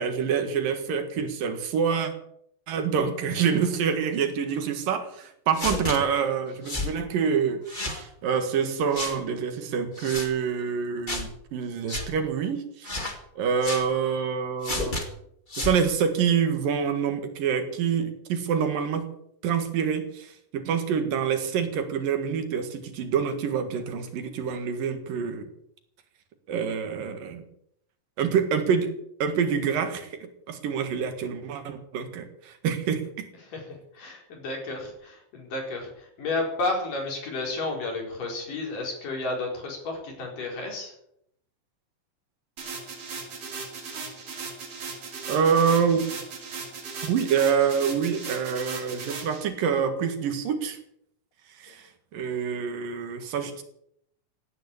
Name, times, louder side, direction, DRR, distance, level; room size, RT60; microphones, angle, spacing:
voice 1, 0.0-2.1 2.7-13.0 13.4-15.0 15.6-19.1 19.4-25.5 26.5-27.5 28.2-28.9 29.2-33.3 45.3-46.0 47.0-50.8 51.6-51.9 52.1-53.6, right 7 dB, 75° right, 7 dB, 3.5 m, -26 dB
sound 1, 5.5-6.0 6.7-6.9 7.7-8.0 8.9-9.2 10.0-10.3 11.1-11.3 11.9-12.1 12.8-13.2 13.6-13.9 14.6-15.0 15.5-15.8, left 2 dB, 15° left, 1.9 m, -31 dB
voice 2, 33.9-40.9, left 2 dB, 65° left, 1 dB, 6.3 m, -32 dB
sound 2, 42.6-49.4, right 4 dB, 50° right, 4.0 m, -37 dB
17.0 x 9.8 x 8.4 m, 0.72 s
omnidirectional pair, 4.0 m